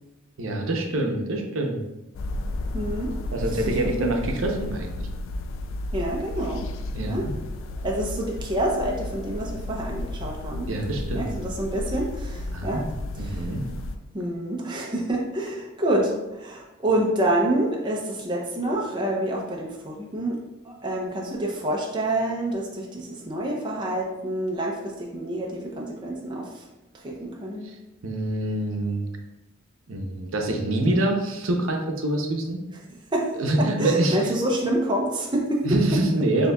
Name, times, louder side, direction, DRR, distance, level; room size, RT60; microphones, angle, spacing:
voice 1, 0.4-1.8 3.3-5.1 6.9-7.3 10.7-11.3 12.5-12.9 13.2-13.6 27.6-27.8 28.0-29.0 29.9-32.6 33.4-34.4 35.6-36.5, right 1 dB, 85° right, 2 dB, 0.7 m, -25 dB
sound 1, 2.1-14.0, left 1 dB, 70° left, 0.3 m, -33 dB
voice 2, 2.7-3.1 3.5-4.1 5.9-6.7 7.1-7.3 7.8-10.7 11.1-12.8 13.1-13.5 14.1-20.4 20.6-26.7 27.0-27.7 33.1-33.3 33.6-35.6, right 1 dB, 25° right, -2 dB, 0.5 m, -27 dB
6.6 x 2.8 x 2.3 m, 1.0 s
head